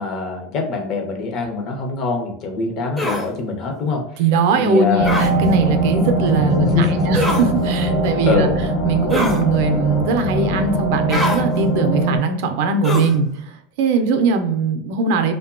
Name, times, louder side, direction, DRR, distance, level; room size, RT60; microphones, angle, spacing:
voice 1, 0.0-4.0 4.6-5.2 6.3-7.0 8.3-8.5, left 4 dB, 45° left, 3 dB, 0.6 m, -23 dB
sound 1, 3.0-3.3 5.0-5.3 7.1-7.5 9.1-9.4 11.1-11.4 12.8-13.2, left 1 dB, 10° left, 0.5 m, -23 dB
voice 2, 4.2-8.5 8.8-13.3 13.8-15.3, right 4 dB, 70° right, 7 dB, 0.4 m, -20 dB
sound 2, 5.0-12.2, right 2 dB, 65° left, 1.0 m, -21 dB
2.8 x 2.1 x 2.4 m, 0.70 s
supercardioid pair, 120°, 0 cm